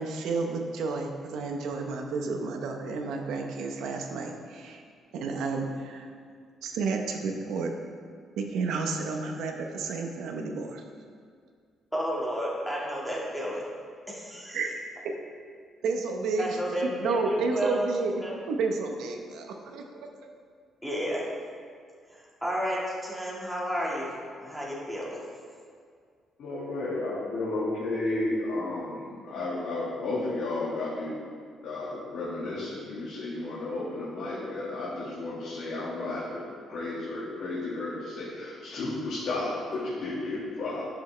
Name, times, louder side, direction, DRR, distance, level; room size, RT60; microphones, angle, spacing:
voice 1, 0.0-4.8 5.1-6.1 6.6-7.7 8.4-10.8 14.5-14.8 15.0-15.1 15.8-18.1 18.5-20.1, right 4 dB, 85° right, 3 dB, 0.9 m, -31 dB
voice 2, 11.9-13.7 14.1-14.6 16.4-18.4 20.8-21.2 22.1-24.1 24.4-25.2, equal, ahead, -5 dB, 1.8 m, -32 dB
voice 3, 26.4-31.2 31.6-40.8, left 2 dB, 65° left, -8 dB, 1.8 m, -33 dB
10.5 x 6.2 x 3.3 m, 2.1 s
cardioid pair, 130°, 0 cm